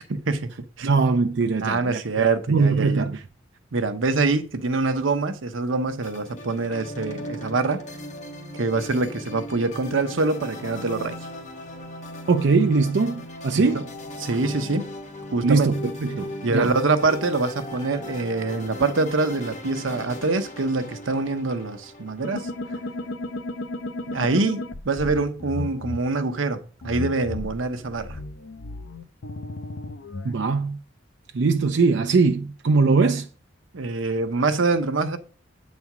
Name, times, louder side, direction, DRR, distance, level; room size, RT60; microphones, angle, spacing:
voice 1, 0.1-0.9 1.6-3.1 3.7-7.8 8.6-11.2 13.5-13.8 14.2-14.8 15.3-15.7 16.4-22.5 24.1-28.2 33.7-35.2, right 3 dB, 90° right, 0.8 m, -25 dB
voice 2, 0.8-3.2 12.3-13.9 15.4-16.7 30.2-30.8 31.3-33.3, right 4 dB, 65° right, 0.5 m, -21 dB
sound 1, 6.0-23.4, left 1 dB, 40° left, 1.3 m, -38 dB
sound 2, 22.2-26.0 26.8-30.4, left 2 dB, 85° left, 0.7 m, -34 dB
8.2 x 4.2 x 6.0 m
head